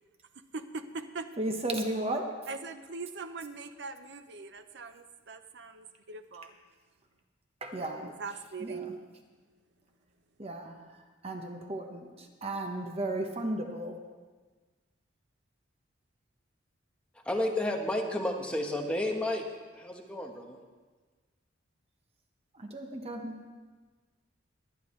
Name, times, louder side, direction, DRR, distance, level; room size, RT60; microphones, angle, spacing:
voice 1, 0.5-1.3 2.5-6.5 7.8-9.0, right 4 dB, 65° right, 9 dB, 0.7 m, -41 dB
voice 2, 1.4-2.3 7.6-8.1 8.6-8.9 10.4-14.0 22.7-23.5, right 1 dB, 35° right, 3 dB, 1.0 m, -35 dB
voice 3, 17.2-19.4 19.7-20.6, left 1 dB, 5° left, 1 dB, 1.1 m, -31 dB
22.0 x 9.4 x 3.2 m, 1.4 s
head